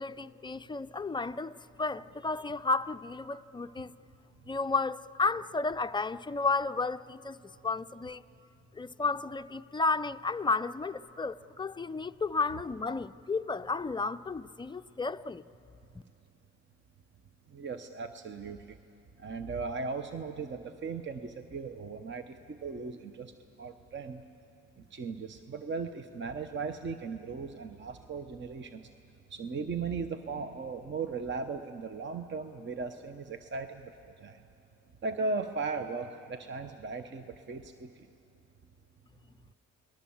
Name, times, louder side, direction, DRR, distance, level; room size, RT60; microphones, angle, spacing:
voice 1, 0.0-3.9 4.5-8.2 8.7-15.4, left 3 dB, 15° left, 0.5 m, -32 dB
voice 2, 17.5-18.6 19.2-23.3 23.6-24.2 24.9-28.8 29.3-33.9 34.2-34.4 35.0-37.9, right 4 dB, 40° right, 0.9 m, -37 dB
29.5 x 20.0 x 7.2 m
cardioid pair, 90°, 30 cm